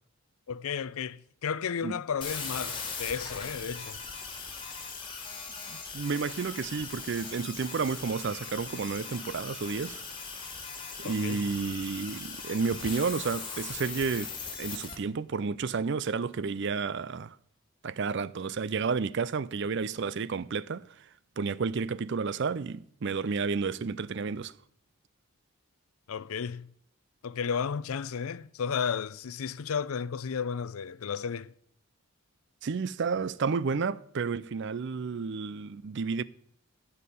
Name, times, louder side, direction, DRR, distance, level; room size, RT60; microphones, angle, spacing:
voice 1, 0.5-4.0 11.0-11.5 26.1-26.7 27.2-31.5, left 6 dB, 75° left, 0.5 m, -33 dB
sound 1, 2.2-14.9, left 5 dB, 25° left, 2.1 m, -39 dB
voice 2, 5.7-10.0 11.0-17.4 17.8-20.8 21.4-24.5 32.6-36.2, right 5 dB, 55° right, 0.4 m, -31 dB
13.5 x 5.6 x 8.4 m
head